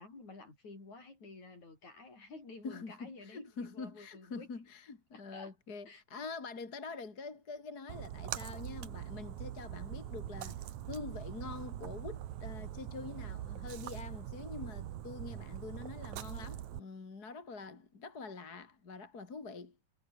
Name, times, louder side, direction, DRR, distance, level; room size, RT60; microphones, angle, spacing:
voice 1, 0.0-4.5 5.1-5.5 5.9-6.3, left 3 dB, 50° left, 9.2 m, -52 dB
voice 2, 2.6-19.8, left 4 dB, 30° left, 2.8 m, -45 dB
Splash splatter, 7.9-16.8, right 12 dB, 60° right, 2.2 m, -43 dB
omnidirectional pair, 4.4 m